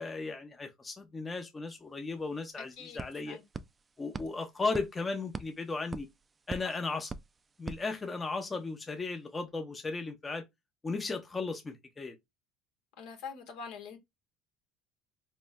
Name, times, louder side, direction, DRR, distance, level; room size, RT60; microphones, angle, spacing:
voice 1, 0.0-3.4 4.0-6.1 6.5-7.1 7.6-10.4 10.8-12.2, left 3 dB, 20° left, 0.8 m, -36 dB
sound 1, 1.9-2.0 2.2-8.6, right 3 dB, 25° right, 0.4 m, -45 dB
voice 2, 2.6-3.0 3.3-3.4 13.0-14.0, left 6 dB, 70° left, 1.3 m, -44 dB
4.2 x 3.1 x 2.2 m
supercardioid pair, 85°, 0 cm